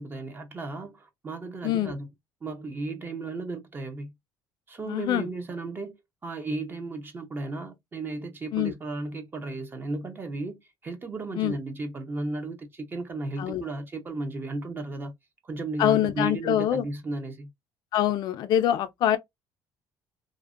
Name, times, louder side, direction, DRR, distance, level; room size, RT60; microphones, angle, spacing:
voice 1, 0.0-2.1 2.4-4.1 4.7-5.9 6.2-15.1 15.4-17.5, right 2 dB, 25° right, 0.6 m, -34 dB
voice 2, 4.9-5.3 8.5-8.7 11.4-11.5 13.4-13.6 15.8-16.8 17.9-19.2, left 11 dB, 60° left, 0.3 m, -24 dB
2.5 x 2.1 x 2.4 m
cardioid pair, 115°, 8 cm